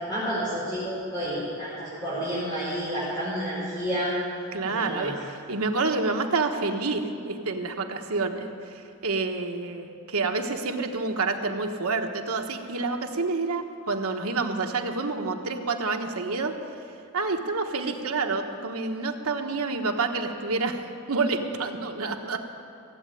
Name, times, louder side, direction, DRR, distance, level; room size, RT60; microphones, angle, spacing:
voice 1, 0.1-4.1 4.7-5.1, equal, 20° left, -11 dB, 4.7 m, -30 dB
voice 2, 4.5-16.5 17.1-20.8 21.1-22.4, right 3 dB, 80° right, 4 dB, 1.2 m, -28 dB
15.5 x 8.4 x 9.1 m, 2.6 s
head